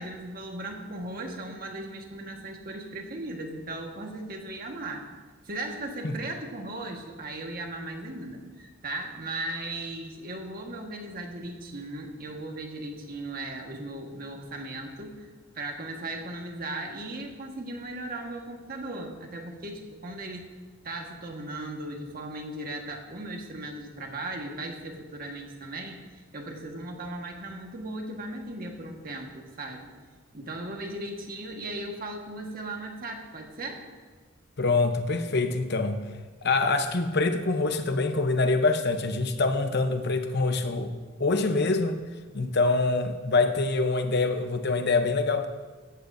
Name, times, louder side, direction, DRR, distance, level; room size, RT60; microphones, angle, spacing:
voice 1, 0.0-5.0 5.4-15.3 15.5-20.5 20.8-29.9 30.3-33.8, right 2 dB, 45° right, 2 dB, 1.5 m, -37 dB
voice 2, 34.6-36.0 36.4-40.9 41.2-42.0 42.3-45.5, left 3 dB, 50° left, 7 dB, 0.9 m, -25 dB
16.5 x 14.0 x 2.7 m, 1.4 s
head